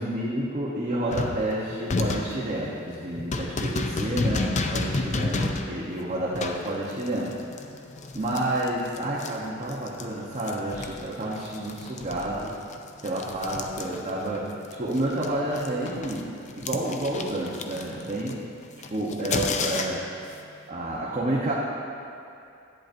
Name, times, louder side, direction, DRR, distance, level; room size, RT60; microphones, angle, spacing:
voice 1, 0.0-7.3 8.1-12.5 13.0-16.3 16.5-18.4 18.9-20.0 20.7-21.5, right 1 dB, 35° right, -6 dB, 0.9 m, -29 dB
sound 1, 1.1-10.1 10.4-14.4 14.6-20.2, left 3 dB, 35° left, 0.5 m, -31 dB
11.0 x 8.8 x 2.6 m, 2.6 s
head